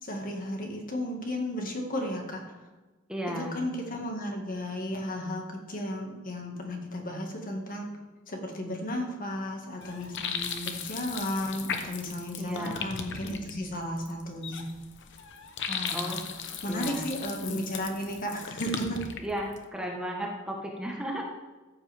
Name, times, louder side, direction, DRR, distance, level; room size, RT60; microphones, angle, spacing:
voice 1, 0.0-2.5 3.4-7.9 8.3-14.7 15.7-16.2 16.6-19.0, left 1 dB, 45° left, 1 dB, 1.8 m, -34 dB
voice 2, 3.1-3.6 12.4-12.9 15.9-16.2 16.6-17.0 19.2-21.2, equal, 5° right, -1 dB, 1.2 m, -34 dB
sound 1, 9.8-19.6, left 6 dB, 60° left, 0.9 m, -37 dB
14.0 x 8.0 x 3.5 m, 1.2 s
head